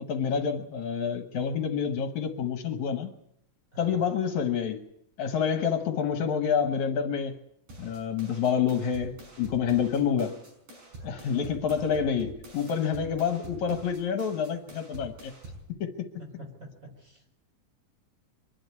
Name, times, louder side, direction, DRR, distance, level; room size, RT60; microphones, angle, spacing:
voice 1, 0.0-3.1 3.8-4.8 5.2-7.3 7.8-10.4 11.0-15.3 15.8-16.1, left 7 dB, 70° left, 7 dB, 2.4 m, -28 dB
voice 2, 3.7-4.0 5.6-5.7 9.8-9.9 11.0-11.3 16.2-17.4, equal, 25° right, 2 dB, 4.6 m, -48 dB
sound 1, 7.7-15.7, right 1 dB, 75° right, 7.9 m, -46 dB
24.0 x 11.5 x 9.5 m, 0.76 s
omnidirectional pair, 3.6 m